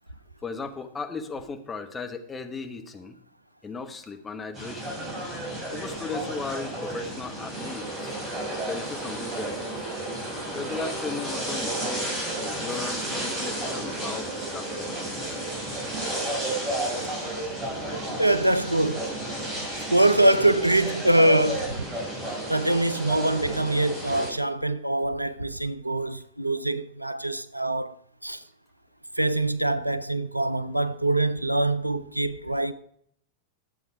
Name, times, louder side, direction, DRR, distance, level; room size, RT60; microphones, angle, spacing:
voice 1, 0.4-3.2 3.6-4.9 5.7-8.1 8.6-9.9 10.5-15.3, left 4 dB, 15° left, 1.3 m, -37 dB
sound 1, 4.5-24.3, right 1 dB, 15° right, 5.6 m, -32 dB
voice 2, 18.2-19.1 19.9-21.8 22.5-27.9 28.2-28.4 29.2-32.7, right 1 dB, 85° right, 0.5 m, -24 dB
12.5 x 7.9 x 4.7 m
figure-of-eight pair, 90°, 0 cm